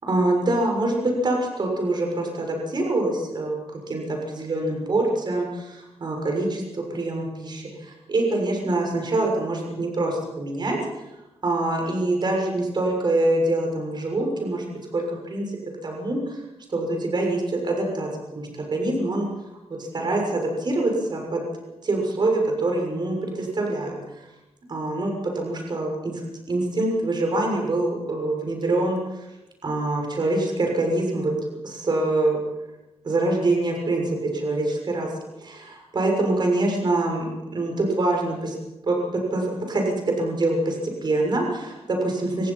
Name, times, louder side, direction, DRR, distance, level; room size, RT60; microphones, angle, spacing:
voice 1, 0.1-3.6 3.9-11.0 11.4-14.6 14.9-15.6 15.8-16.4 16.7-19.3 19.8-21.4 21.8-24.3 24.7-26.2 26.5-29.3 29.6-31.3 31.6-32.4 33.0-35.1 35.4-38.5 38.8-42.5, right 2 dB, 40° right, 1 dB, 6.7 m, -25 dB
27.5 x 19.0 x 5.8 m, 0.96 s
wide cardioid pair, 145°, 11 cm